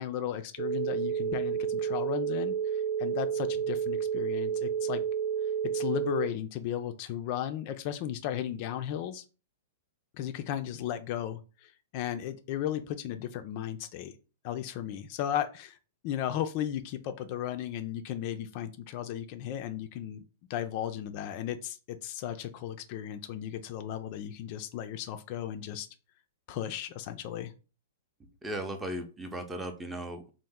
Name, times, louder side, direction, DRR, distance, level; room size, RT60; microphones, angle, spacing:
voice 1, 0.0-5.0 5.7-9.2 10.2-14.1 14.4-15.8 16.0-20.2 20.5-25.9 26.5-27.5, left 11 dB, 45° left, 9 dB, 0.3 m, -35 dB
sound 1, 0.6-6.3, right 8 dB, 80° right, 0.5 m, -30 dB
voice 2, 28.2-30.3, right 1 dB, 15° right, 7 dB, 0.5 m, -37 dB
3.0 x 2.0 x 3.5 m, 0.34 s
hypercardioid pair, 120°, 0 cm